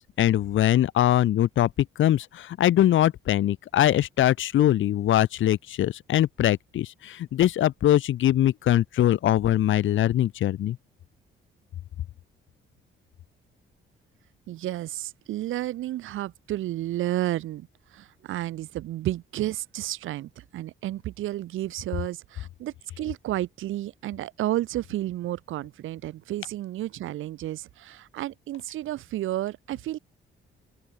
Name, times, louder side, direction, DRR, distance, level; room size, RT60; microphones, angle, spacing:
voice 1, 0.0-1.7 2.0-10.8, left 12 dB, 75° left, 5.7 m, -22 dB
voice 2, 14.5-30.0, right 14 dB, 85° right, 7.2 m, -32 dB
open air
cardioid pair, 90°, 20 cm